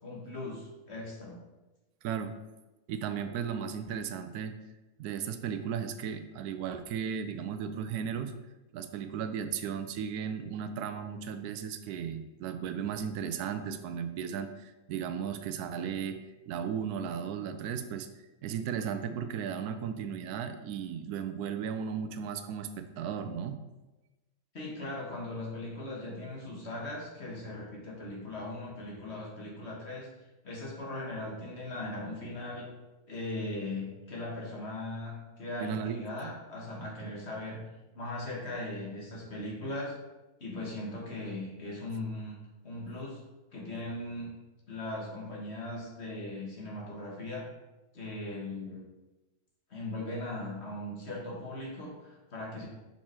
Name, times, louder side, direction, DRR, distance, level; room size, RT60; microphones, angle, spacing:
voice 1, 0.0-1.4 24.5-30.1 30.4-32.7 33.1-37.6 37.9-39.9 40.4-42.4 42.6-43.2 43.5-44.3 44.7-47.5 47.9-48.8 49.7-52.7, left 2 dB, 45° left, -3 dB, 1.7 m, -39 dB
voice 2, 2.9-4.5 5.0-8.3 8.7-16.2 16.5-18.1 18.4-23.6 35.6-36.0 36.2-36.3 36.8-37.1, right 7 dB, 85° right, 9 dB, 1.1 m, -35 dB
6.0 x 4.3 x 4.4 m, 1.1 s
omnidirectional pair, 1.6 m